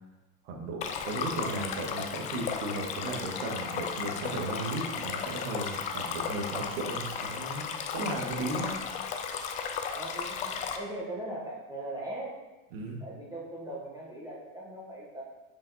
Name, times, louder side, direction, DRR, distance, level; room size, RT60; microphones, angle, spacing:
voice 1, 0.4-8.7 12.7-13.0, right 2 dB, 60° right, 0 dB, 2.0 m, -35 dB
Stream, 0.8-10.8, left 6 dB, 20° left, 0.3 m, -35 dB
voice 2, 9.9-12.3 13.0-15.2, right 1 dB, 10° right, -5 dB, 1.7 m, -39 dB
8.8 x 5.8 x 4.3 m, 1.1 s
supercardioid pair, 140°, 43 cm